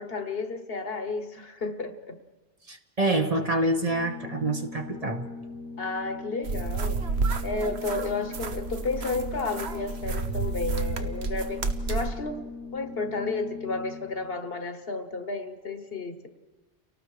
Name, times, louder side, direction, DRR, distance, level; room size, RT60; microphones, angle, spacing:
voice 1, 0.0-2.2 5.8-7.0 7.4-12.4 12.7-16.3, left 3 dB, 55° left, 8 dB, 1.4 m, -32 dB
voice 2, 2.7-5.3, right 2 dB, 35° right, 5 dB, 1.1 m, -26 dB
Organ, 3.7-14.4, left 3 dB, 85° right, 3.8 m, -41 dB
sound 1, 6.4-12.1, right 4 dB, 65° right, 1.3 m, -30 dB
29.5 x 18.0 x 4.9 m, 1.2 s
omnidirectional pair, 1.2 m